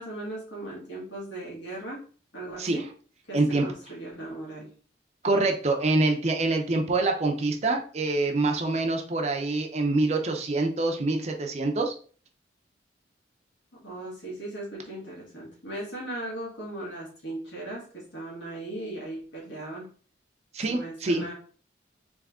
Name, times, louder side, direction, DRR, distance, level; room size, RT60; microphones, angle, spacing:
voice 1, 0.0-2.0 2.3-2.8 3.3-4.7 13.8-19.9 20.7-21.3, right 1 dB, 90° left, -4 dB, 1.8 m, -38 dB
voice 2, 3.3-3.6 5.2-11.9 20.5-21.2, right 2 dB, 35° right, 3 dB, 0.5 m, -25 dB
3.6 x 3.2 x 3.5 m, 0.42 s
head